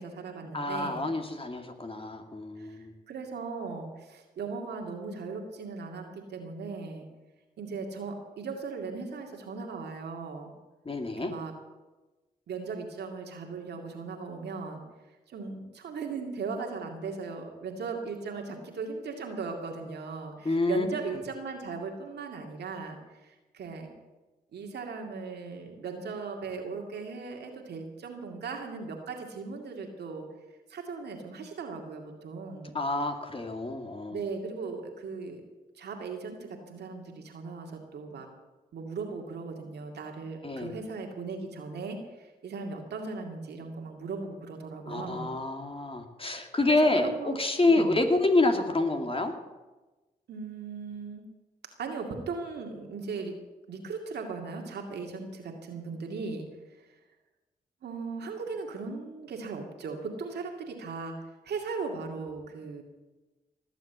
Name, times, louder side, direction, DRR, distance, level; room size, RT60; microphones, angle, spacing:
voice 1, 0.0-1.1 2.6-7.1 7.6-10.5 11.2-11.5 12.5-14.8 15.3-23.9 24.5-30.3 30.7-32.8 34.1-35.4 35.8-38.3 38.7-45.3 46.3-47.4 47.7-48.0 50.3-51.2 51.8-53.4 53.7-57.0 57.8-61.2 61.4-62.8, right 4 dB, 85° right, 2 dB, 2.3 m, -38 dB
voice 2, 0.5-2.9 10.8-11.3 20.4-20.8 32.7-34.2 40.4-40.7 44.9-49.3, left 2 dB, 35° left, 4 dB, 2.5 m, -27 dB
18.5 x 7.6 x 8.1 m, 1.2 s
supercardioid pair, 45°, 17 cm